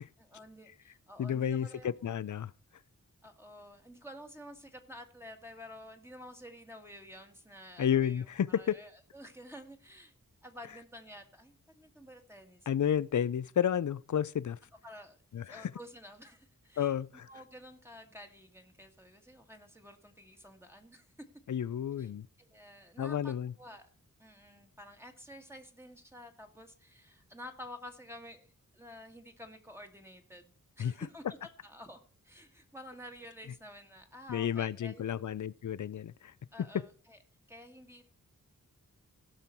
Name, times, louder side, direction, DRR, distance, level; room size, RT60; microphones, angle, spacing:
voice 1, 0.2-2.2 3.2-10.1 10.4-12.7 14.8-16.9 17.3-21.1 22.0-22.1 22.4-23.9 24.2-31.4 31.6-35.1 36.5-37.2 37.5-38.1, equal, 5° right, 1.7 m, -51 dB
voice 2, 1.2-2.5 7.8-8.8 12.7-14.6 15.3-15.7 16.8-17.3 21.5-22.3 23.0-23.5 30.8-30.9 34.3-36.3, left 9 dB, 60° left, 0.5 m, -31 dB
17.0 x 5.7 x 4.5 m
wide cardioid pair, 65°, 34 cm